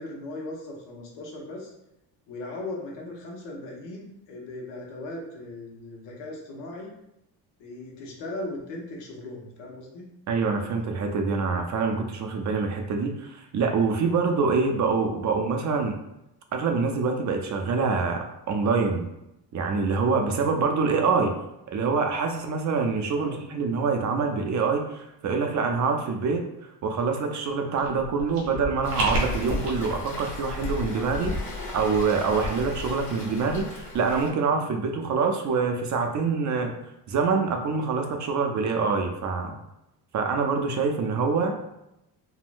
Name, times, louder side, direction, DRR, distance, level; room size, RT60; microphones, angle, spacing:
voice 1, 0.0-1.7 2.3-6.9 7.6-10.1 23.1-23.4, left 2 dB, 90° left, -1 dB, 0.9 m, -38 dB
voice 2, 10.3-16.0 16.5-19.1 19.5-21.3 21.7-26.5 26.8-31.3 31.7-36.8 37.1-39.5 40.1-41.5, right 4 dB, 45° right, 4 dB, 0.4 m, -25 dB
sound 1, 27.8-29.7, right 2 dB, 70° right, 1.1 m, -31 dB
Waves surf, 28.8-34.3, left 3 dB, 30° left, 1.0 m, -35 dB
3.6 x 2.1 x 2.4 m, 0.87 s
cardioid pair, 110°, 42 cm